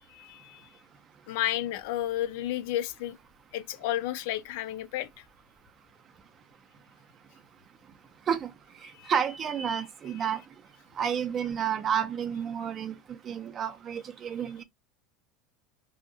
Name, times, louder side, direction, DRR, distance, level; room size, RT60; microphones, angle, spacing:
voice 1, 0.1-0.7 1.3-3.2 3.5-5.1 8.9-9.1, left 13 dB, 65° left, 0.4 m, -32 dB
voice 2, 8.8-10.4 11.0-14.6, right 8 dB, 25° right, 0.4 m, -30 dB
2.7 x 2.4 x 2.5 m
supercardioid pair, 170°, 0 cm